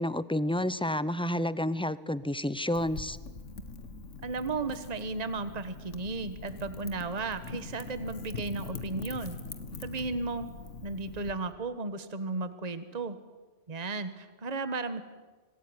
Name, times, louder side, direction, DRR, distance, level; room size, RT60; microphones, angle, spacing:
voice 1, 0.0-3.2, left 1 dB, 5° left, 16 dB, 0.5 m, -30 dB
Wind / Fire, 2.7-11.3, left 4 dB, 85° left, 2.1 m, -43 dB
voice 2, 4.2-9.4 9.8-10.5 10.8-13.2 13.7-15.0, right 3 dB, 35° right, 11 dB, 1.4 m, -34 dB
27.0 x 20.0 x 9.7 m, 1.3 s
omnidirectional pair, 1.2 m